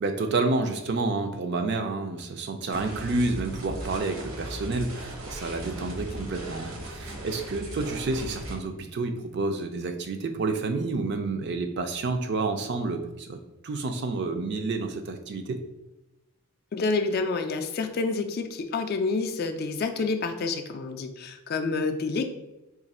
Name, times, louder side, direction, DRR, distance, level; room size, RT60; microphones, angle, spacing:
voice 1, 0.0-13.4 13.6-15.6, right 3 dB, 50° right, 6 dB, 0.4 m, -29 dB
sound 1, 2.7-8.5, right 1 dB, 70° right, 0.8 m, -38 dB
voice 2, 16.7-22.3, left 3 dB, 45° left, 6 dB, 0.3 m, -28 dB
3.0 x 2.4 x 4.1 m, 0.99 s
head